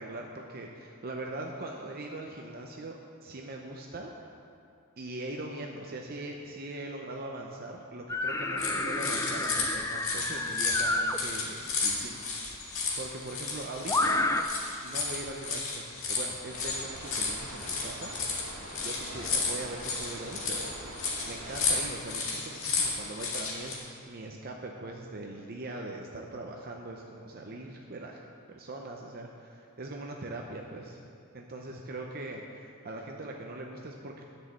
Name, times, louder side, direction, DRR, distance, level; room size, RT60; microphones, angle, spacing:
voice 1, 0.0-4.1 5.0-12.2 12.5-12.6 13.0-14.3 14.8-15.8 16.1-18.2 18.8-28.2 28.5-31.0 31.3-34.2, right 2 dB, 45° right, 1 dB, 0.7 m, -41 dB
sound 1, 8.1-11.2 12.5-12.6 13.9-14.4, left 2 dB, 15° left, 0.4 m, -29 dB
sound 2, 8.6-23.8, left 4 dB, 70° left, 2.0 m, -33 dB
sound 3, 16.5-21.8, right 1 dB, 75° right, 1.9 m, -44 dB
10.5 x 6.3 x 8.0 m, 2.4 s
head